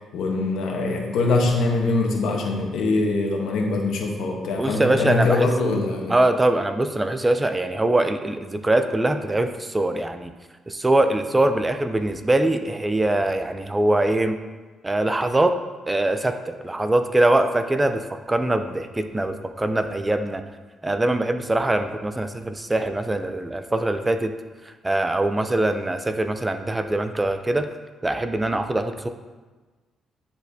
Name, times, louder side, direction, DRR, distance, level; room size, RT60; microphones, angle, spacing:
voice 1, 0.1-6.1, left 3 dB, 80° left, 1 dB, 1.2 m, -23 dB
voice 2, 4.6-5.5 6.1-10.3 10.7-14.4 14.8-15.6 15.9-20.4 20.8-24.3 24.6-27.7 28.0-29.1, right 1 dB, 15° right, 8 dB, 0.4 m, -22 dB
10.0 x 4.2 x 2.7 m, 1.3 s
cardioid pair, 90°, 0 cm